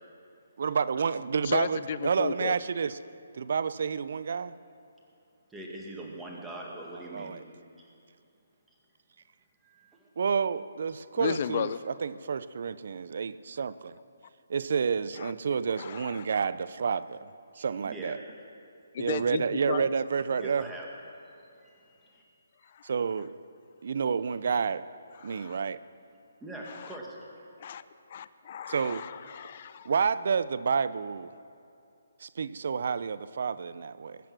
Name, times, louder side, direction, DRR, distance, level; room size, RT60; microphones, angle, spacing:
voice 1, 0.6-3.0 3.3-4.6 7.1-7.4 10.2-13.9 14.5-18.2 19.0-20.7 22.8-23.3 23.8-24.8 25.2-25.8 28.6-29.1 29.8-31.3 32.2-34.2, right 6 dB, 60° right, 16 dB, 0.5 m, -29 dB
voice 2, 1.4-2.6 11.2-11.8 15.2-15.3 15.8-16.3 18.9-19.9 22.7-22.9 25.2-25.6 26.7-26.8 27.6-27.8 28.1-29.9, left 8 dB, 45° left, 14 dB, 0.4 m, -34 dB
voice 3, 5.5-7.4 7.8-7.9 9.6-10.1 17.6-18.2 20.4-20.9 21.5-22.2 26.4-27.2, right 1 dB, 5° right, -3 dB, 2.0 m, -43 dB
21.0 x 7.7 x 6.1 m, 2.6 s
hypercardioid pair, 155°, 0 cm